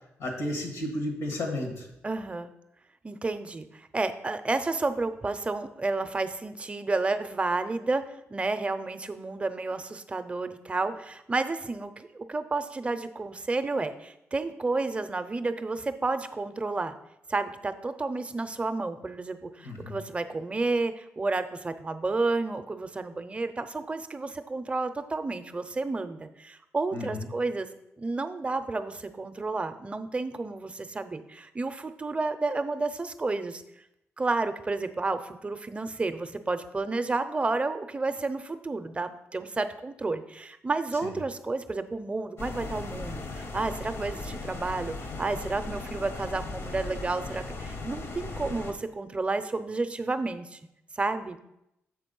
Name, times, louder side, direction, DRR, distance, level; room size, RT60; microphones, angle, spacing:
voice 1, 0.2-1.9 19.6-20.0 26.9-27.3 41.0-41.1, left 1 dB, 85° left, 2 dB, 1.7 m, -33 dB
voice 2, 2.0-2.5 3.0-8.0 8.3-16.9 17.3-27.7 28.0-33.6 34.2-50.6 51.0-51.4, right 3 dB, 25° right, 10 dB, 0.6 m, -31 dB
sound 1, 42.4-48.7, left 3 dB, 60° left, 0.9 m, -37 dB
7.2 x 4.0 x 5.4 m, 0.84 s
cardioid pair, 85°, 5 cm